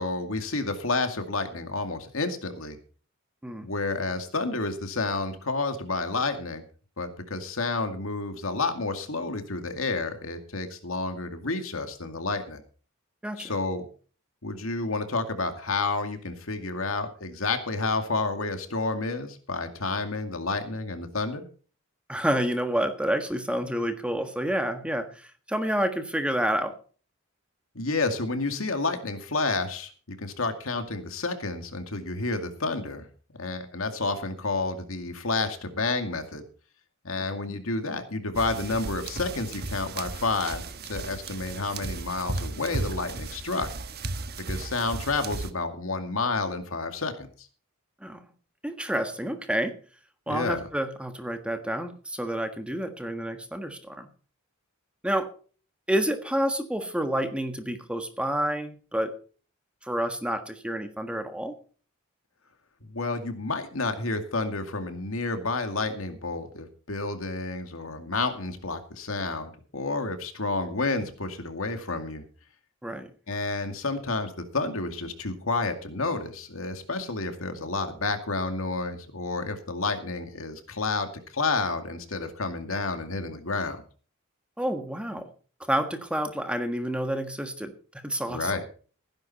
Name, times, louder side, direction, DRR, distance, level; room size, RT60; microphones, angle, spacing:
voice 1, 0.0-2.8 3.6-6.6 7.0-12.6 13.4-13.9 14.4-21.5 27.7-33.1 33.4-36.4 37.0-43.7 44.5-47.5 50.3-50.6 62.8-72.2 73.3-83.8 88.3-88.6, left 3 dB, 75° left, 7 dB, 2.3 m, -30 dB
voice 2, 22.1-26.7 48.0-48.2 48.6-49.8 50.3-54.1 55.0-55.3 55.9-59.1 59.8-61.5 72.8-73.1 84.6-85.3 85.6-87.7 88.0-88.6, right 1 dB, 5° right, 7 dB, 1.5 m, -29 dB
sound 1, 38.3-45.5, right 2 dB, 50° right, 1.2 m, -35 dB
16.5 x 10.5 x 4.2 m, 0.40 s
head